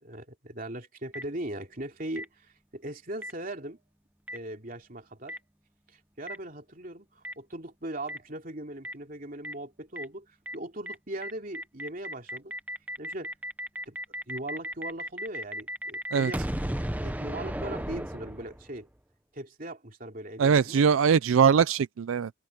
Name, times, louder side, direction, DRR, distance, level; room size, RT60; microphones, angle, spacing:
voice 1, 0.0-3.8 4.3-5.4 5.9-12.5 13.0-13.3 13.9-14.0 14.3-16.7 17.0-18.9 19.3-20.8, right 1 dB, 40° right, 3.2 m, -39 dB
Boom, 1.1-1.2 2.2-2.3 3.2-3.3 4.3-4.4 5.3-5.4 6.3-6.4 7.2-7.3 8.1-8.2 8.8-8.9 9.4-9.5 10.0-10.1 10.5-10.6 10.9-11.0 11.2-18.8, equal, 10° right, 0.7 m, -35 dB
voice 2, 20.4-22.3, right 6 dB, 75° right, 0.4 m, -22 dB
head